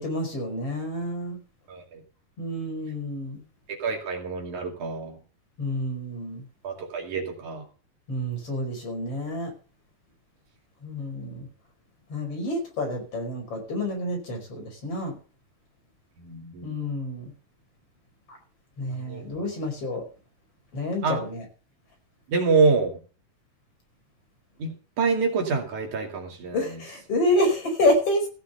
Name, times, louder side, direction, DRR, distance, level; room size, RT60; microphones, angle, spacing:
voice 1, 0.0-1.4 2.4-3.4 5.6-6.4 8.1-9.5 10.8-11.5 12.1-15.2 16.6-17.3 18.3-18.4 18.8-20.0 20.7-21.4 26.5-28.3, left 1 dB, 45° left, 2 dB, 5.8 m, -28 dB
voice 2, 1.7-2.0 3.8-5.2 6.6-7.6 16.2-16.8 19.1-19.4 21.0-21.2 22.3-22.9 24.6-24.7 25.0-26.6, right 4 dB, 60° right, 2 dB, 3.8 m, -26 dB
15.5 x 6.7 x 6.7 m, 0.37 s
omnidirectional pair, 3.9 m